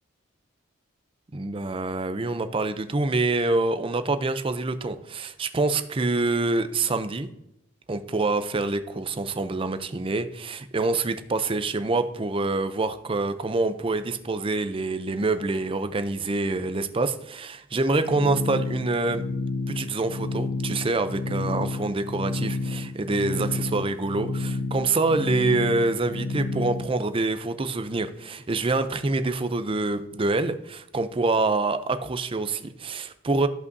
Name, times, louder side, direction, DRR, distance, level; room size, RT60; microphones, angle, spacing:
voice 1, 1.3-7.3 7.9-19.2 19.7-33.5, right 3 dB, 25° right, 10 dB, 0.5 m, -26 dB
sound 1, 18.0-26.9, left 2 dB, 85° left, 0.6 m, -30 dB
13.5 x 5.5 x 2.7 m, 0.83 s
head